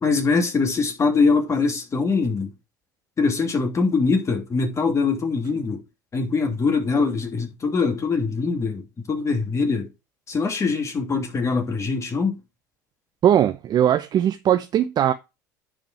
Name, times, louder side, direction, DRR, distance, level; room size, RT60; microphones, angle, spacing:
voice 1, 0.0-2.5 3.2-5.8 6.1-8.8 9.1-9.9 10.3-12.3, left 4 dB, 30° left, 3.1 m, -22 dB
voice 2, 13.2-15.1, right 10 dB, 45° right, 0.9 m, -19 dB
10.5 x 5.0 x 4.5 m
hypercardioid pair, 80°, 10 cm